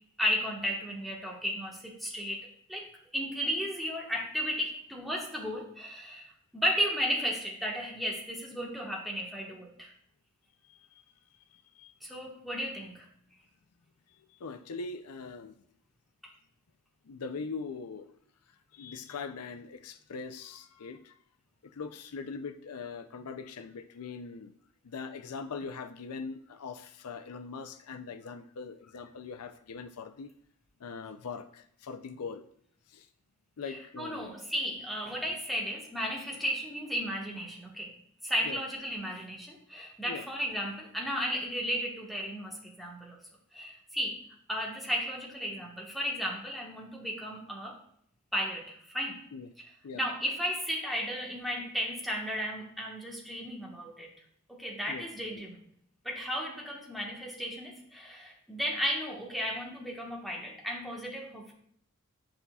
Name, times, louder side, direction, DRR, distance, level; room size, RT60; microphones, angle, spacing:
voice 1, 0.2-2.4 2.7-9.9 12.0-13.1 33.7-37.9 38.2-43.2 43.5-44.2 44.5-47.8 48.3-49.2 49.9-54.1 54.5-55.6 56.0-61.5, equal, ahead, -3 dB, 1.3 m, -34 dB
voice 2, 10.7-11.0 11.5-11.9 14.4-15.5 17.1-18.1 18.7-21.1 21.7-24.5 24.8-30.3 30.8-32.4 32.9-33.1 33.6-34.4 38.4-38.6 40.0-40.3 49.3-49.5 49.8-50.0 54.9-55.0 55.3-55.4, left 4 dB, 85° left, 10 dB, 0.5 m, -41 dB
10.5 x 5.5 x 2.3 m, 0.67 s
head